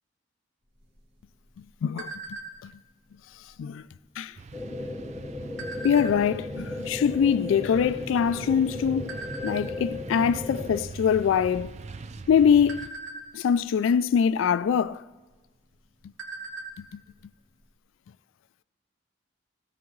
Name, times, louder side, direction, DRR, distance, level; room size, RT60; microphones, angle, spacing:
sound 1, 0.8-2.8 3.3-3.5 3.8-4.2 4.9-6.4 7.0-7.1 7.3-8.6 9.1-9.6 10.1-10.4 10.7-10.9 11.3-11.9 12.3-13.7 14.8-14.9 15.3-15.4 15.8-16.8 17.1-17.2 17.6-17.7, right 3 dB, 65° right, 2.1 m, -40 dB
voice 1, 1.8-2.1 2.6-2.7 3.6-3.8 4.2-4.4 5.8-9.2 9.4-11.7 12.3-12.9 13.3-15.0 16.8-17.0, left 7 dB, 75° left, 0.3 m, -23 dB
sound 2, 4.4-12.9, right 3 dB, 35° right, 0.4 m, -42 dB
sound 3, 4.5-10.8, left 2 dB, 10° right, 1.6 m, -36 dB
17.0 x 17.0 x 3.1 m
head